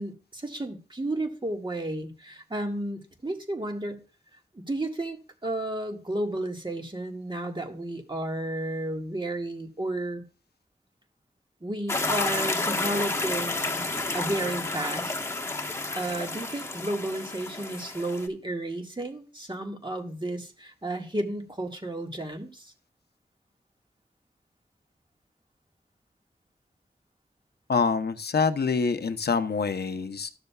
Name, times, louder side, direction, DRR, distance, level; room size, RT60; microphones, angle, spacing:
voice 1, 0.0-4.0 4.5-10.2 11.6-13.9 14.1-15.2 16.0-22.7, right 1 dB, 30° right, 3 dB, 1.7 m, -32 dB
sound 1, 11.9-18.3, left 2 dB, 15° left, 1.2 m, -30 dB
voice 2, 27.7-30.3, left 5 dB, 90° left, 10 dB, 0.7 m, -26 dB
13.0 x 6.6 x 2.3 m, 0.34 s
wide cardioid pair, 65°, 16 cm